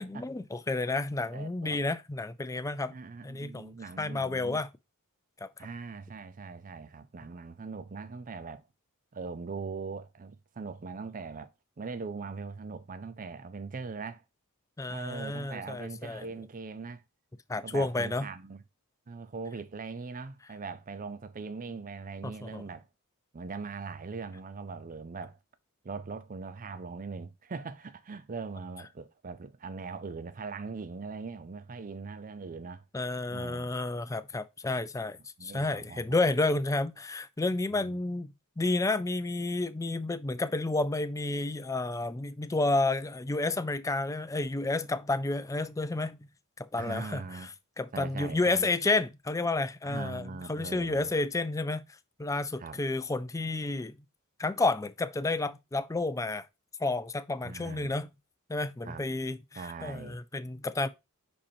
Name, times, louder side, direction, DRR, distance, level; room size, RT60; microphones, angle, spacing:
voice 1, 0.0-2.9 3.2-4.7 5.4-5.7 14.8-16.3 17.5-18.3 22.2-22.6 32.9-46.3 46.7-47.2 47.8-51.8 52.2-54.0 54.4-56.4 56.8-58.1 58.5-60.9, left 2 dB, 15° left, 0.4 m, -31 dB
voice 2, 1.3-1.8 2.9-4.6 5.6-8.6 9.1-11.5 11.8-14.2 14.9-17.0 17.6-18.6 19.1-22.9 23.3-25.4 25.8-32.8 33.3-33.7 35.4-36.2 37.7-38.0 46.8-47.5 47.9-48.7 49.8-51.1 52.6-52.8 57.4-57.9 58.8-59.1 59.6-60.2, right 4 dB, 40° right, 0.5 m, -41 dB
10.5 x 4.3 x 2.7 m
head